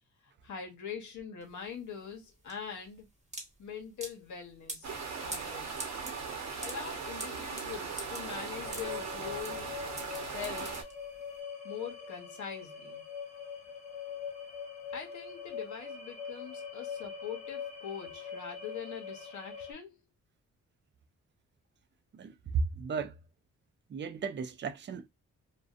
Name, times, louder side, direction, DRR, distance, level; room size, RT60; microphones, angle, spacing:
voice 1, 0.4-3.1 3.6-4.9 5.2-5.8 6.6-9.7 10.3-10.8 11.6-13.0 14.9-20.0, left 7 dB, 70° left, 0.9 m, -43 dB
sound 1, 1.4-11.3, right 2 dB, 20° right, 1.0 m, -45 dB
sound 2, 4.8-10.8, right 5 dB, 60° right, 0.9 m, -39 dB
sound 3, 8.2-19.7, left 7 dB, 25° left, 0.7 m, -43 dB
voice 2, 22.1-23.1 23.9-25.1, right 5 dB, 40° right, 0.5 m, -34 dB
2.5 x 2.2 x 2.4 m
cardioid pair, 65°, 30 cm